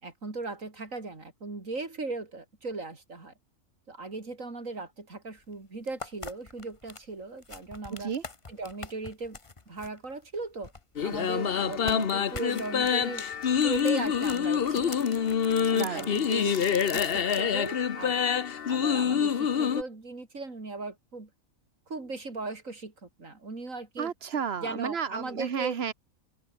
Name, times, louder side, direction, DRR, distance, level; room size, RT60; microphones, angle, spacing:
voice 1, 0.0-3.3 3.9-8.1 8.5-9.4 9.7-10.7 11.0-13.3 13.6-15.0 15.6-18.4 18.7-21.3 21.9-24.1 24.6-25.8, right 3 dB, 65° right, 4.4 m, -38 dB
sound 1, 5.4-5.5 5.9-11.2 11.7-17.5, left 3 dB, 25° left, 1.1 m, -44 dB
voice 2, 7.9-8.2 15.7-16.2 24.0-25.9, right 7 dB, 50° right, 1.3 m, -32 dB
sound 2, 11.0-19.8, left 7 dB, 45° left, 1.0 m, -26 dB
open air
omnidirectional pair, 1.5 m